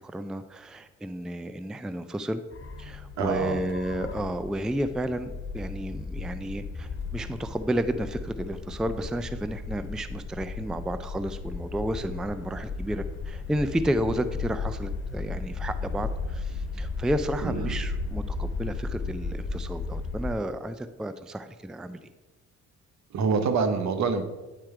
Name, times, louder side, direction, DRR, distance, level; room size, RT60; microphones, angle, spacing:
voice 1, 0.0-2.4 2.8-22.0, right 1 dB, ahead, 12 dB, 0.3 m, -32 dB
sound 1, 2.5-20.3, left 4 dB, 40° left, 1.5 m, -35 dB
voice 2, 3.2-3.7 17.4-17.8 23.1-24.2, right 5 dB, 65° right, 8 dB, 0.9 m, -26 dB
9.1 x 4.4 x 4.8 m, 1.1 s
cardioid pair, 90°, 30 cm